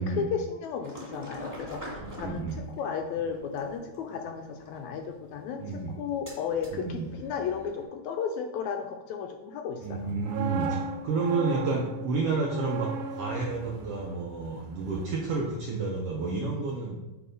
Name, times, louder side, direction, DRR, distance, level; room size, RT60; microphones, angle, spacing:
voice 1, 0.0-2.5 2.8-10.1, left 6 dB, 80° left, 5 dB, 1.7 m, -34 dB
sound 1, 0.8-7.8, equal, 5° right, 1.6 m, -45 dB
voice 2, 2.0-2.6 5.6-6.0 6.7-7.1 9.8-10.8 11.0-17.0, right 3 dB, 75° right, -2 dB, 1.4 m, -30 dB
sound 2, 10.0-15.9 16.2-16.5, right 5 dB, 90° right, 2.2 m, -38 dB
7.9 x 3.4 x 5.3 m, 1.0 s
omnidirectional pair, 3.7 m